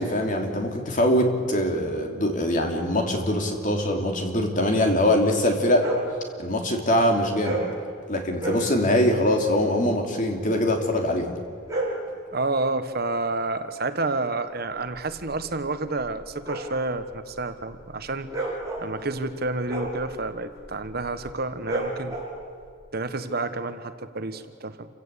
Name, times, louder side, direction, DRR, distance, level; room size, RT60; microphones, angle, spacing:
voice 1, 0.0-5.9 6.4-7.6 8.1-11.4, left 1 dB, 40° left, 3 dB, 3.1 m, -23 dB
sound 1, 5.7-6.1 7.4-7.8 8.3-8.7 11.4-12.1 14.6-22.7, right 2 dB, 15° right, 6.1 m, -33 dB
voice 2, 12.3-18.3 18.8-22.1 22.9-24.9, right 2 dB, 50° right, 10 dB, 1.2 m, -29 dB
28.0 x 16.5 x 8.4 m, 2.2 s
head